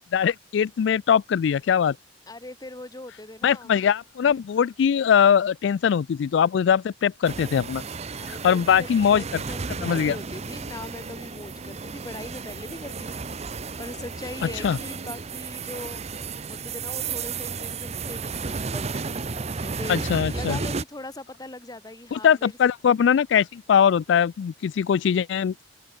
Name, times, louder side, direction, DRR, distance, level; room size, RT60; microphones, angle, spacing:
voice 1, 0.1-2.0 3.4-7.8 8.3-9.4 9.8-10.2 14.6-14.8 19.9-20.6 22.1-25.6, left 8 dB, 70° left, 0.3 m, -21 dB
voice 2, 2.3-3.7 8.2-13.2 13.8-16.0 16.5-18.9 19.4-22.6, left 2 dB, 20° left, 1.4 m, -40 dB
sound 1, 7.2-20.8, right 4 dB, 35° right, 0.8 m, -33 dB
head